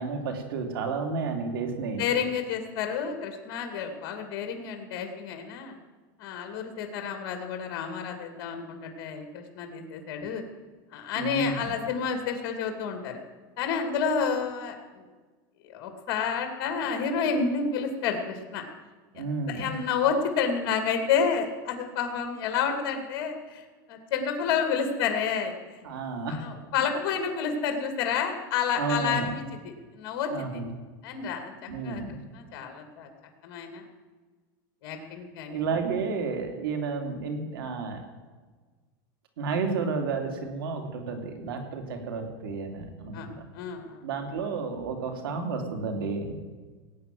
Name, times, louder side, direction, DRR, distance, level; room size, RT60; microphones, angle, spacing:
voice 1, 0.0-2.0 11.1-11.7 19.1-19.7 25.8-26.4 28.8-29.3 30.3-30.7 31.7-32.2 35.5-38.0 39.4-43.4 44.0-46.4, right 4 dB, 90° right, 4 dB, 3.2 m, -31 dB
voice 2, 2.0-5.7 6.2-10.4 10.9-13.2 13.6-15.0 15.7-18.6 19.1-25.9 26.3-30.6 31.0-32.0 32.3-33.1 33.4-33.9 34.8-35.7 43.1-43.3 43.5-44.0, left 6 dB, 45° left, 5 dB, 2.5 m, -30 dB
18.0 x 8.8 x 7.7 m, 1.4 s
supercardioid pair, 160°, 12 cm